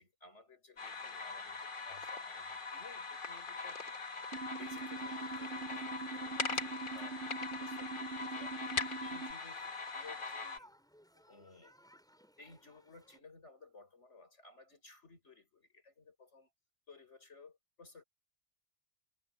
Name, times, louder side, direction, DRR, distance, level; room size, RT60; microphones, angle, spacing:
voice 1, 0.0-7.2 7.6-10.7 11.3-11.8 12.4-16.5 16.9-18.0, left 3 dB, 65° left, 5.4 m, -58 dB
sound 1, 0.8-10.6, left 4 dB, 45° left, 1.5 m, -41 dB
sound 2, 4.3-9.3, right 4 dB, 60° right, 0.9 m, -43 dB
sound 3, 4.7-13.2, equal, 5° left, 5.3 m, -63 dB
omnidirectional pair, 1.3 m